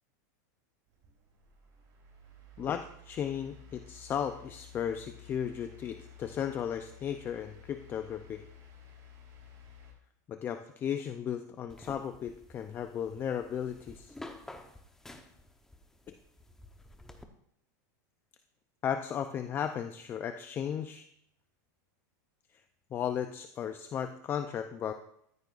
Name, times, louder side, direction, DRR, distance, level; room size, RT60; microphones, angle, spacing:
sound 1, 0.9-9.9, left 5 dB, 40° right, 4.7 m, -54 dB
voice 1, 2.6-8.4 10.3-14.2 16.1-16.2 18.8-21.1 22.5-22.6 22.9-24.9, left 8 dB, 20° left, 8 dB, 0.5 m, -35 dB
sound 2, 11.7-17.2, left 2 dB, 5° left, 0.9 m, -51 dB
14.5 x 13.5 x 2.5 m, 0.72 s
supercardioid pair, 150°, 10 cm